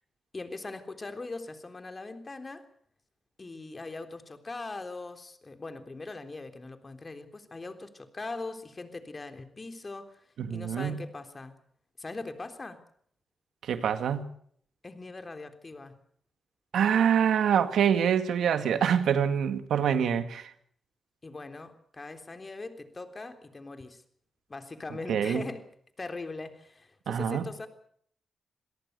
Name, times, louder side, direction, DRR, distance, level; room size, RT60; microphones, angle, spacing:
voice 1, 0.3-2.7 3.4-10.2 10.5-11.5 12.0-12.8 14.8-15.9 21.2-24.0 24.5-25.7 26.0-27.7, left 3 dB, 35° left, 7 dB, 3.6 m, -41 dB
voice 2, 10.5-11.0 13.6-14.3 16.7-20.5 25.1-25.4 27.1-27.5, right 8 dB, 90° right, 9 dB, 2.0 m, -25 dB
26.5 x 18.0 x 6.8 m, 0.63 s
cardioid pair, 75°, 0 cm